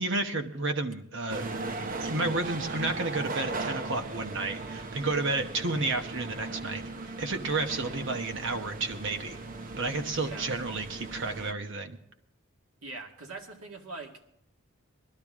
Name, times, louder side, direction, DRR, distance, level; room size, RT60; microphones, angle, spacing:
voice 1, 0.0-1.5 2.0-9.4 9.8-12.0, right 3 dB, 60° right, 6 dB, 1.1 m, -31 dB
sound 1, 1.3-11.5, right 3 dB, 40° right, 0.7 m, -38 dB
voice 2, 10.2-10.5 12.8-14.2, right 3 dB, 90° right, 1 dB, 2.0 m, -42 dB
20.5 x 12.0 x 3.7 m, 0.78 s
head